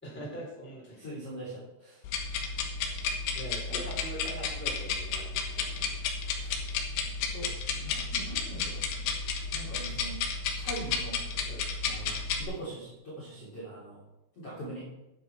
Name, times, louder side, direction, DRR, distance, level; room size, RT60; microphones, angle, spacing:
voice 1, 0.0-1.1 3.3-5.3 11.4-11.7, equal, ahead, -5 dB, 4.1 m, -42 dB
voice 2, 1.0-2.6 6.3-6.6 7.3-10.2 10.5-11.2 11.8-14.0 14.4-14.8, right 1 dB, 35° left, -8 dB, 3.7 m, -43 dB
sound 1, 2.0-12.4, left 5 dB, 70° left, 3.2 m, -33 dB
11.0 x 10.0 x 4.6 m, 0.94 s
omnidirectional pair, 5.9 m